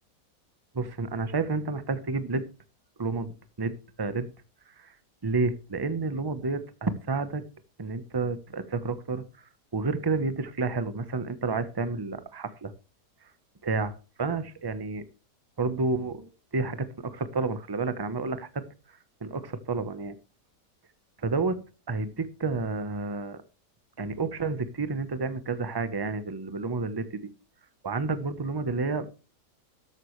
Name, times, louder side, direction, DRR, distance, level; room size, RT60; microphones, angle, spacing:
voice 1, 0.7-2.4 3.0-4.3 4.8-4.9 5.2-7.4 7.8-9.2 9.7-12.7 13.6-15.0 15.6-18.6 19.2-20.1 21.2-21.6 21.9-23.4 24.0-27.1 27.8-29.1, right 3 dB, 20° right, 12 dB, 0.8 m, -30 dB
14.0 x 11.5 x 3.2 m, 0.34 s
omnidirectional pair, 1.8 m